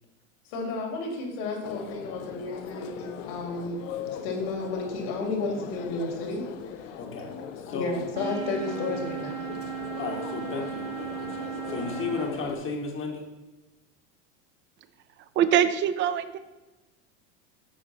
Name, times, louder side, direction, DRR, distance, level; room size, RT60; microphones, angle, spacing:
voice 1, 0.5-3.8 4.2-6.4 6.8-7.0 7.7-9.5, left 3 dB, 65° left, 0 dB, 2.4 m, -32 dB
sound 1, 1.6-12.6, left 8 dB, 80° left, 0.8 m, -40 dB
voice 2, 7.0-7.3 7.7-8.0 10.0-13.2, left 4 dB, 35° left, 2 dB, 1.2 m, -34 dB
sound 2, 8.1-12.3, right 9 dB, 80° right, 1.7 m, -36 dB
voice 3, 15.4-16.4, right 9 dB, 30° right, 12 dB, 0.5 m, -23 dB
7.6 x 4.9 x 4.1 m, 1.1 s
supercardioid pair, 120°, 36 cm